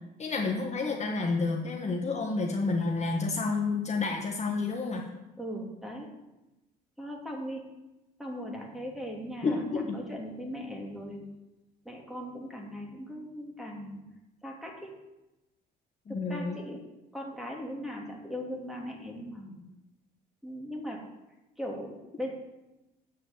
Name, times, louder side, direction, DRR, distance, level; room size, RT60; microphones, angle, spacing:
voice 1, 0.2-5.0 9.4-10.0 16.1-16.6, left 3 dB, 35° left, 1 dB, 1.6 m, -30 dB
voice 2, 5.4-6.1 7.0-7.7 8.2-11.3 11.8-14.0 14.4-14.9 16.1-16.8 17.1-19.6 20.4-21.0 21.6-22.3, equal, ahead, -1 dB, 3.2 m, -39 dB
8.5 x 6.5 x 7.6 m, 1.0 s
supercardioid pair, 75°, 19 cm